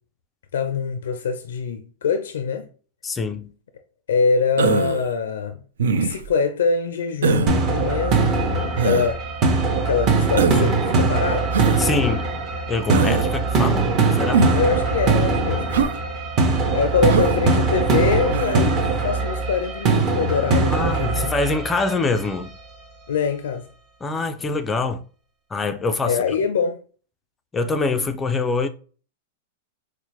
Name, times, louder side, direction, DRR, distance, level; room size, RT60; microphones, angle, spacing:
voice 1, 0.5-2.7 4.1-5.6 5.9-8.5 8.8-9.2 9.8-11.5 14.5-15.9 16.5-21.3 23.1-23.7 26.1-26.8, left 5 dB, 85° left, 0.4 m, -24 dB
voice 2, 3.0-3.5 11.8-12.3 12.7-14.5 20.7-22.5 24.0-25.0 25.5-26.2 27.5-28.7, left 3 dB, 15° left, 0.3 m, -24 dB
Human voice, 4.6-5.1 5.8-6.3 7.2-7.5 8.8-9.1 10.4-10.7 11.5-11.8 12.9-13.3 14.3-14.7 15.7-16.0 17.1-17.4 18.3-18.7, right 5 dB, 90° right, 0.4 m, -22 dB
sound 1, 7.5-22.4, right 3 dB, 35° right, 0.8 m, -21 dB
4.3 x 2.0 x 3.0 m
hypercardioid pair, 145°, 0 cm